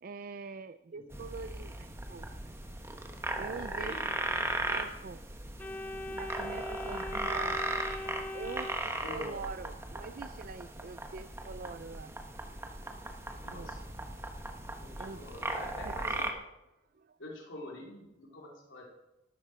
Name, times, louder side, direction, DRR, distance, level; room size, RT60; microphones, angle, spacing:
voice 1, 0.0-2.3 3.4-4.1 4.7-5.2 5.5-7.6 8.0-12.1 13.5-13.7 15.0-15.4 15.8-16.2 16.9-17.2, right 4 dB, 45° right, 13 dB, 0.4 m, -44 dB
sound 1, 1.1-16.3, right 2 dB, 15° right, 1.1 m, -37 dB
voice 2, 3.5-4.0 9.0-9.4 13.4-13.9 14.8-16.3 17.2-18.8, left 1 dB, 80° left, -2 dB, 3.3 m, -46 dB
Organ, 5.6-9.5, left 1 dB, 10° left, 0.4 m, -41 dB
13.5 x 12.5 x 4.9 m, 0.98 s
head